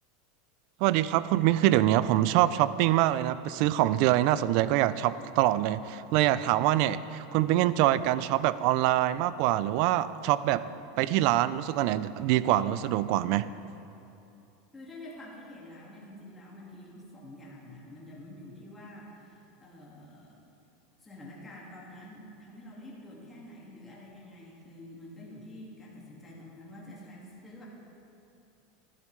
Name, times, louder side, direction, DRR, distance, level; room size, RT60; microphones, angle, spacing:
voice 1, 0.8-10.6 11.0-13.5, right 14 dB, 55° right, 16 dB, 0.3 m, -25 dB
voice 2, 14.7-20.4 21.0-27.7, left 1 dB, 10° left, -5 dB, 1.9 m, -47 dB
14.0 x 11.0 x 3.2 m, 2.7 s
supercardioid pair, 150°, 0 cm